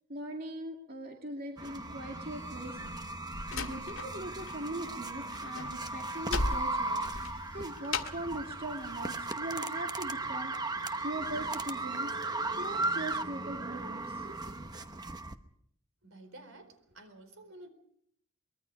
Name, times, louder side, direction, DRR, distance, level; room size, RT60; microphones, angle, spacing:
voice 1, 0.1-12.1 12.6-14.4, right 1 dB, 45° right, 1 dB, 2.4 m, -41 dB
sound 1, 1.6-10.6, left 2 dB, 5° left, 4.5 m, -62 dB
sound 2, 1.6-15.3, right 2 dB, 20° right, 1.0 m, -36 dB
Slam, 2.8-4.6 4.9-8.3, left 3 dB, 75° left, 1.9 m, -37 dB
voice 2, 16.0-17.7, right 2 dB, 70° right, 9 dB, 4.4 m, -51 dB
24.0 x 22.0 x 5.2 m, 0.71 s
head